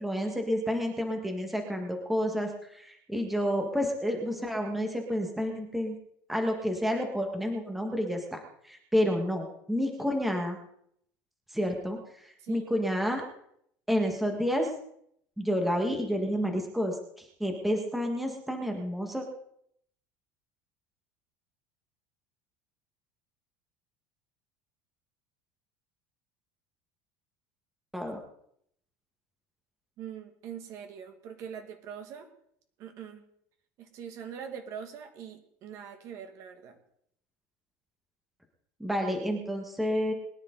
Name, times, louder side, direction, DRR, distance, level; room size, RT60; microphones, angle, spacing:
voice 1, 0.0-5.9 6.3-8.4 8.6-10.6 11.5-13.2 13.9-14.7 15.4-19.2 27.9-28.2 38.8-40.1, equal, ahead, 2 dB, 1.8 m, -30 dB
voice 2, 30.0-32.3 32.8-33.2 33.8-36.8, right 8 dB, 45° right, 5 dB, 2.2 m, -43 dB
22.0 x 10.5 x 4.0 m, 0.69 s
cardioid pair, 155°, 7 cm